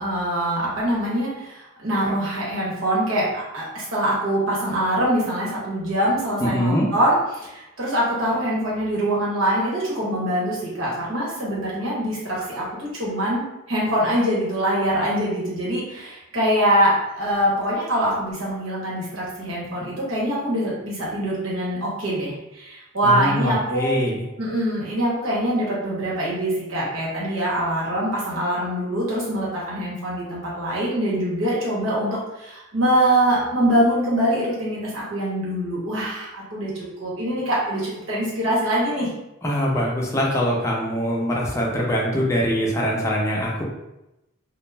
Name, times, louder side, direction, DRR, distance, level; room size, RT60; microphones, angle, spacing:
voice 1, 0.0-3.3 3.5-24.0 24.4-39.1, right 1 dB, 80° right, -6 dB, 1.0 m, -24 dB
voice 2, 6.4-6.9 23.0-24.2 39.4-43.6, equal, 15° left, -4 dB, 0.5 m, -23 dB
2.3 x 2.0 x 3.2 m, 0.93 s
head